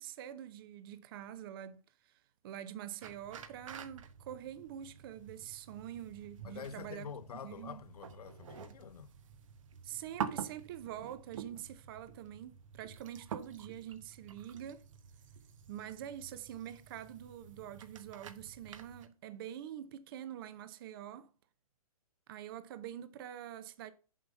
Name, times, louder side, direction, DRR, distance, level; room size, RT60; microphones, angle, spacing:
voice 1, 0.0-1.8 2.4-7.1 7.4-7.8 9.8-14.9 15.7-21.3 22.3-23.9, right 11 dB, 35° right, 0.8 m, -45 dB
sound 1, 3.0-19.1, right 7 dB, 60° right, 1.2 m, -48 dB
voice 2, 6.4-9.1, left 7 dB, 80° left, 0.8 m, -47 dB
7.4 x 5.6 x 5.4 m
hypercardioid pair, 150°, 19 cm